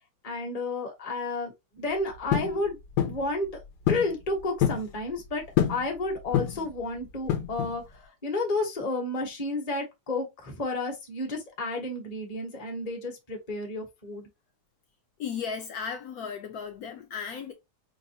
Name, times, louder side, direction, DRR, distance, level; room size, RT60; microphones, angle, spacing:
voice 1, 0.2-3.6 3.9-5.4 5.7-14.3, left 2 dB, 25° left, 0.9 m, -31 dB
sound 1, 2.3-2.6 3.0-3.2 3.9-4.1 4.4-4.9 5.6-5.9 6.3-6.7 7.3-7.8, left 10 dB, 85° left, 1.3 m, -26 dB
voice 2, 15.2-17.5, left 6 dB, 70° left, 1.1 m, -35 dB
4.7 x 2.5 x 2.7 m
omnidirectional pair, 1.8 m